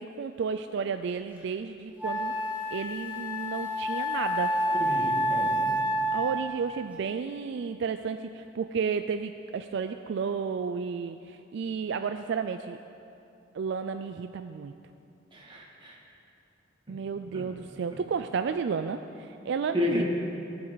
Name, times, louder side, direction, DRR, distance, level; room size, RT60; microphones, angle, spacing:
voice 1, 0.0-2.3 2.7-4.5 6.1-12.8 13.5-14.8 16.9-20.0, right 6 dB, 65° right, 9 dB, 0.3 m, -32 dB
Wind instrument woodwind instrument, 1.4-1.5 2.0-6.6, equal, 10° right, 1.4 m, -29 dB
voice 2, 4.8-5.7 15.3-16.0 17.3-17.4 19.7-20.0, left 1 dB, 25° right, -4 dB, 2.0 m, -31 dB
19.0 x 7.7 x 4.0 m, 2.8 s
head